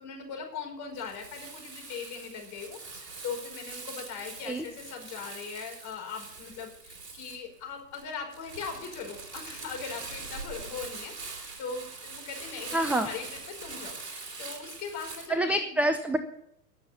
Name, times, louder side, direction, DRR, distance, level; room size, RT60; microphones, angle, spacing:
voice 1, 0.0-15.6, left 5 dB, 35° left, 2 dB, 5.3 m, -40 dB
Crumpling crinkling, 0.9-15.3, right 4 dB, 70° right, 3.4 m, -43 dB
voice 2, 12.7-13.1 15.3-16.2, right 1 dB, 5° right, 8 dB, 0.6 m, -26 dB
19.0 x 7.3 x 7.2 m, 0.74 s
figure-of-eight pair, 90°, 49 cm